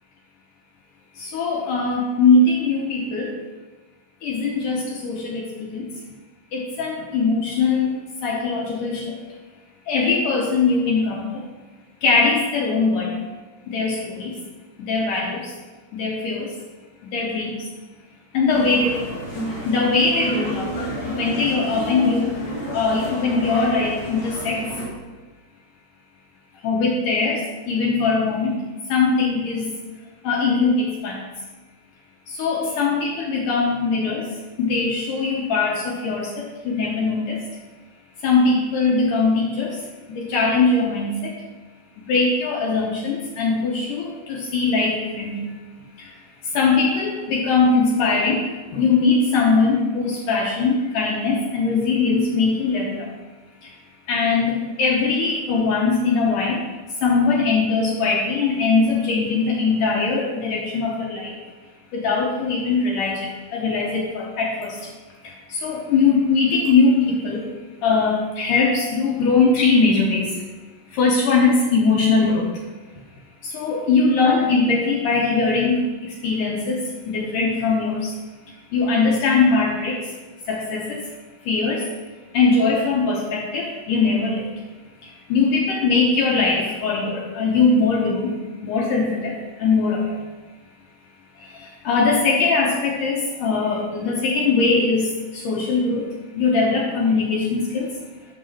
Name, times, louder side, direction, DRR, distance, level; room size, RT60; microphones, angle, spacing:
voice 1, 1.3-3.3 4.2-5.4 5.7-5.8 6.5-7.9 8.2-9.0 9.9-11.2 12.0-13.1 13.7-14.3 14.9-15.3 16.0-16.4 17.1-17.5 18.3-18.9 19.7-20.6 21.2-22.3 22.7-24.6 26.6-27.4 27.7-28.6 28.9-29.6 30.3-31.1 32.4-34.2 34.6-36.3 36.7-37.2 38.2-39.7 40.3-41.1 42.1-44.0 44.5-45.4 46.6-48.4 48.7-52.8 54.1-54.5 54.8-56.6 57.0-61.2 61.9-63.1 63.5-64.7 65.6-67.0 67.2-67.4 67.8-70.2 71.0-72.4 73.5-75.8 76.2-76.8 77.1-78.0 78.7-79.9 80.5-80.8 81.5-81.8 82.3-83.6 83.9-84.3 85.3-88.3 88.6-89.0 89.6-90.0 91.9-95.1 95.5-96.0 96.4-97.9, left 4 dB, 80° left, -2 dB, 1.9 m, -20 dB
sound 1, 18.5-24.8, right 1 dB, 40° left, 1.7 m, -30 dB
6.8 x 6.3 x 5.5 m, 1.3 s
omnidirectional pair, 4.9 m